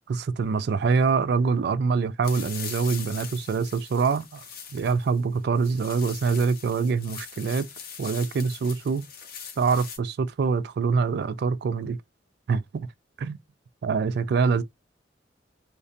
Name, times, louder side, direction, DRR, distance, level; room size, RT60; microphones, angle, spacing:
voice 1, 0.1-4.4 4.7-7.7 8.0-9.1 9.6-12.0 12.5-12.9 13.2-13.4 13.8-14.6, right 5 dB, 60° right, 0.3 m, -25 dB
sound 1, 2.2-10.0, left 7 dB, 55° left, 0.6 m, -41 dB
2.6 x 2.1 x 2.4 m
head